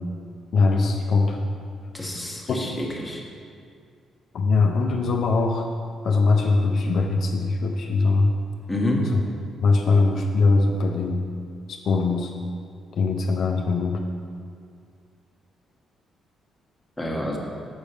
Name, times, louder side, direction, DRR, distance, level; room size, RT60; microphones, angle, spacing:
voice 1, 0.5-1.4 2.5-2.8 4.3-5.7 6.0-8.3 9.1-9.2 9.6-11.2 11.7-12.3 13.0-14.0, left 3 dB, 65° left, 2 dB, 0.5 m, -21 dB
voice 2, 1.9-3.2 8.7-9.1 17.0-17.4, left 1 dB, 10° left, -2 dB, 1.3 m, -27 dB
7.2 x 5.3 x 4.9 m, 2.2 s
cardioid pair, 90°, 0 cm